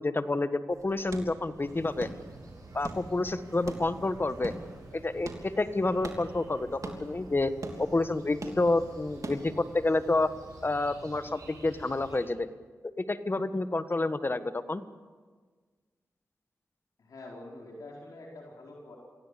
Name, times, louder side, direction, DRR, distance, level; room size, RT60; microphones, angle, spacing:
voice 1, 0.0-2.1 2.7-4.5 4.9-7.5 7.8-10.3 10.6-12.5 13.0-14.8, left 2 dB, 35° left, 11 dB, 1.4 m, -29 dB
sound 1, 0.7-9.7, right 2 dB, 65° right, 3.3 m, -44 dB
sound 2, 1.5-12.3, right 2 dB, 90° right, 6.9 m, -50 dB
voice 2, 17.0-19.0, left 2 dB, 85° left, -2 dB, 4.6 m, -46 dB
25.5 x 17.0 x 8.4 m, 1.5 s
cardioid pair, 50°, 6 cm